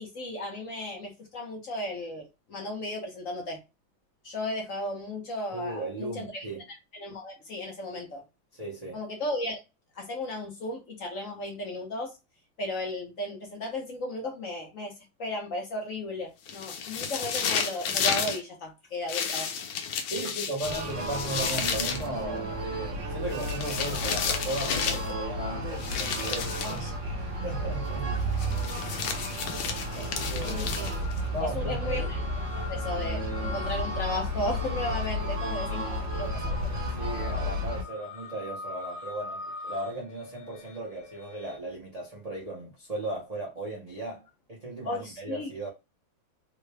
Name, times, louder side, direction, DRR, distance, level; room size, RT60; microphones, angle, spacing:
voice 1, 0.0-2.2 2.5-3.6 4.2-6.4 6.9-8.2 8.9-9.6 9.9-12.1 12.6-14.9 15.2-19.5 26.6-26.9 30.4-30.9 31.4-32.2 32.7-36.8 44.8-45.5, left 1 dB, 50° left, 1.1 m, -35 dB
voice 2, 5.5-6.7 8.5-9.0 20.1-26.8 27.4-28.3 29.9-30.7 31.3-32.1 36.8-45.7, right 2 dB, 70° right, 0.3 m, -36 dB
sound 1, 16.5-18.4 19.1-22.1 23.3-25.1 25.8-26.8 28.4-31.2, left 7 dB, 85° left, 1.5 m, -32 dB
sound 2, 20.6-37.8, equal, 50° right, 1.1 m, -32 dB
sound 3, 24.5-24.7 25.0-41.6, left 3 dB, 70° left, 1.4 m, -45 dB
3.7 x 2.2 x 3.3 m
omnidirectional pair, 2.2 m